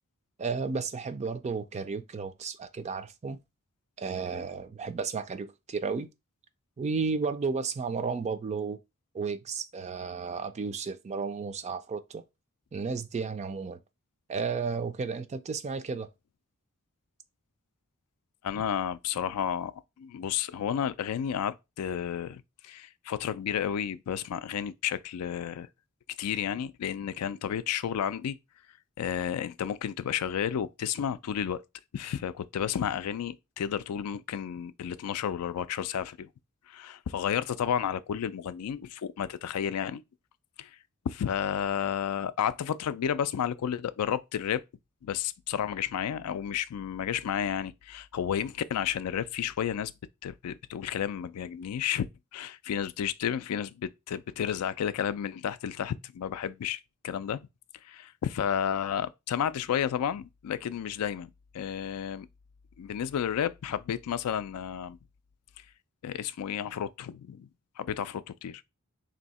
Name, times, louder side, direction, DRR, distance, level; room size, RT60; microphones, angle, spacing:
voice 1, 0.4-3.4 4.0-6.1 6.8-8.8 9.1-12.2 12.7-13.8 14.3-16.1, right 5 dB, 30° right, 0.4 m, -33 dB
voice 2, 18.4-25.7 26.2-28.4 29.0-31.6 31.9-36.3 36.7-40.0 40.6-40.7 41.0-44.6 45.0-49.9 50.2-52.1 52.3-57.5 57.8-62.3 62.8-65.0 66.0-67.5 67.8-68.6, left 9 dB, 85° left, 0.4 m, -32 dB
3.4 x 2.8 x 4.0 m
head